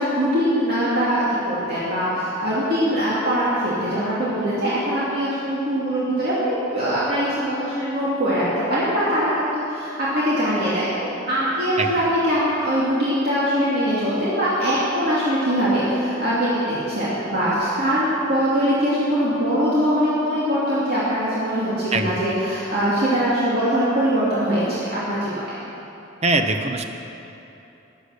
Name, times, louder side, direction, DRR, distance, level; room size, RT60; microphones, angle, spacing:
voice 1, 0.0-25.6, equal, 55° right, -9 dB, 2.7 m, -22 dB
voice 2, 21.9-22.4 26.2-26.8, right 2 dB, 35° right, 5 dB, 0.8 m, -22 dB
15.0 x 9.9 x 6.6 m, 3.0 s
head